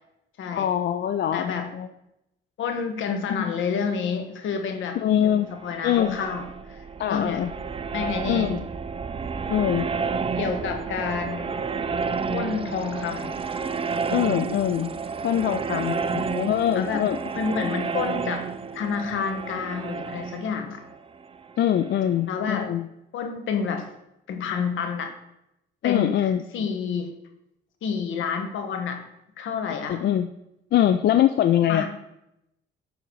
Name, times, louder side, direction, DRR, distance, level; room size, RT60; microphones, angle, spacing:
voice 1, 0.5-1.5 1.7-1.9 3.3-3.5 5.0-5.5 5.8-6.2 7.0-7.5 8.3-8.7 9.5-9.9 14.1-14.9 15.2-17.2 21.6-22.9 25.8-26.4 29.9-30.3 30.7-31.8, left 10 dB, 60° left, 9 dB, 0.4 m, -23 dB
voice 2, 1.3-1.7 2.6-5.0 5.2-7.4 7.9-8.5 10.4-11.5 12.3-13.3 16.7-17.1 17.3-18.5 18.7-20.8 22.3-22.7 23.1-23.9 24.3-25.1 25.8-27.1 27.8-29.0 29.4-30.0 31.7-31.8, left 6 dB, 75° left, 6 dB, 1.3 m, -29 dB
sound 1, 5.5-22.1, right 5 dB, 30° right, 0.5 m, -31 dB
10.5 x 3.9 x 4.6 m, 0.85 s
cardioid pair, 90°, 20 cm